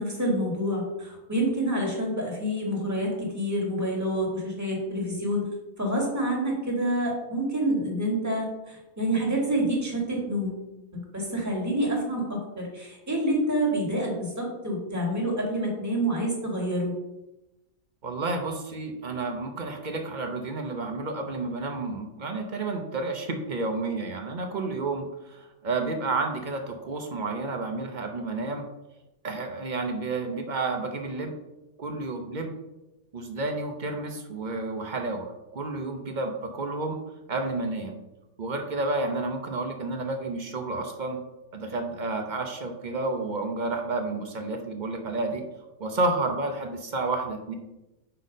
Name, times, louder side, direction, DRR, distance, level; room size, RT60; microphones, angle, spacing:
voice 1, 0.0-5.5 5.8-10.6 10.9-16.9, right 1 dB, 10° right, -2 dB, 1.5 m, -27 dB
voice 2, 18.0-28.7 29.2-31.3 31.8-32.5 33.1-37.0 37.3-38.0 38.4-41.2 41.5-45.5 45.8-47.5, right 3 dB, 50° right, 4 dB, 0.6 m, -30 dB
5.5 x 4.1 x 5.1 m, 0.97 s
omnidirectional pair, 1.6 m